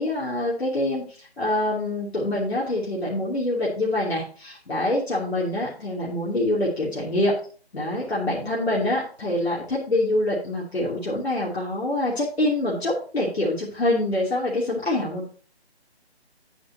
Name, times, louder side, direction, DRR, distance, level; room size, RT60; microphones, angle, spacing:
voice 1, 0.0-7.3 7.7-15.3, left 1 dB, 70° left, -5 dB, 3.0 m, -25 dB
9.5 x 8.8 x 2.8 m, 0.40 s
figure-of-eight pair, 155°, 33 cm